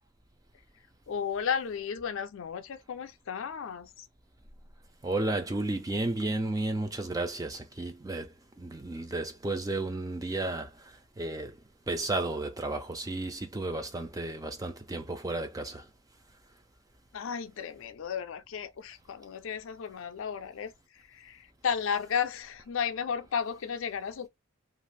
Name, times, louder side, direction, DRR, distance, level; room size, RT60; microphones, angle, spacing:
voice 1, 1.1-4.1 17.1-24.3, left 7 dB, 60° left, 0.4 m, -34 dB
voice 2, 5.0-11.6 11.9-15.9, right 2 dB, 15° right, 0.4 m, -33 dB
2.5 x 2.4 x 3.2 m
head